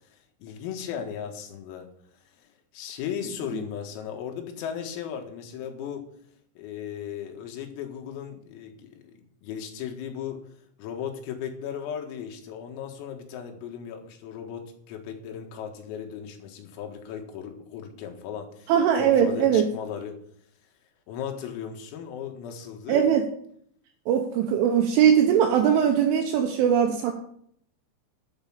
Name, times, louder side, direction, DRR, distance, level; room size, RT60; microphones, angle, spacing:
voice 1, 0.1-1.9 2.4-2.5 2.7-6.1 6.6-9.1 9.4-10.4 10.8-18.7 19.0-20.2 21.1-23.1, left 8 dB, 85° left, 3 dB, 4.3 m, -36 dB
voice 2, 18.7-19.7 22.9-23.3 24.1-27.1, right 8 dB, 75° right, 3 dB, 3.3 m, -20 dB
11.5 x 7.2 x 7.2 m, 0.65 s
omnidirectional pair, 5.9 m